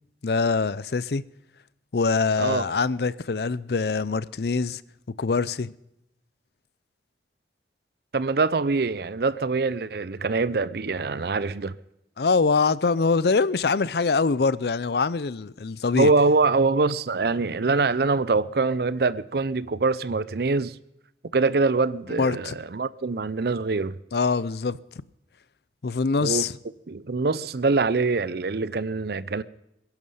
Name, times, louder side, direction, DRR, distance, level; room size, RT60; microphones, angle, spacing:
voice 1, 0.2-1.2 1.9-4.8 5.2-5.7 12.2-16.1 22.2-22.6 24.1-24.8 25.8-26.5, left 4 dB, 65° left, 0.5 m, -24 dB
voice 2, 8.1-11.7 16.0-20.8 21.3-24.0 26.2-26.5 26.9-29.4, right 3 dB, 60° right, 0.6 m, -24 dB
22.5 x 11.0 x 5.6 m
head